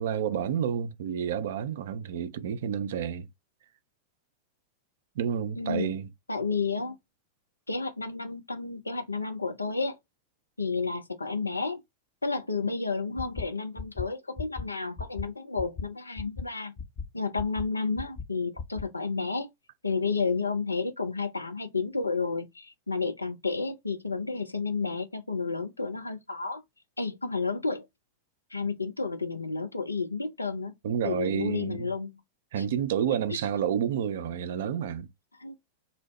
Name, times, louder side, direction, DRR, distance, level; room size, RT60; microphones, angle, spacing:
voice 1, 0.0-3.3 5.2-6.1 30.8-31.9 32.5-35.1, right 8 dB, 60° right, 0.4 m, -30 dB
voice 2, 5.6-5.9 6.3-7.0 7.7-10.0 10.6-11.8 12.2-16.7 17.1-19.5 19.8-26.6 27.0-27.9 28.5-30.7 31.0-32.1 32.6-32.7 35.4-35.5, left 4 dB, 80° left, 0.4 m, -31 dB
sound 1, 13.2-13.4 13.8-14.0 14.4-14.6 15.0-15.2 15.6-15.8 16.2-16.4 16.8-17.0 17.4-17.6 18.0-18.2 18.6-18.8, left 5 dB, 25° left, 0.5 m, -35 dB
2.7 x 2.0 x 3.0 m
figure-of-eight pair, 90°, 0 cm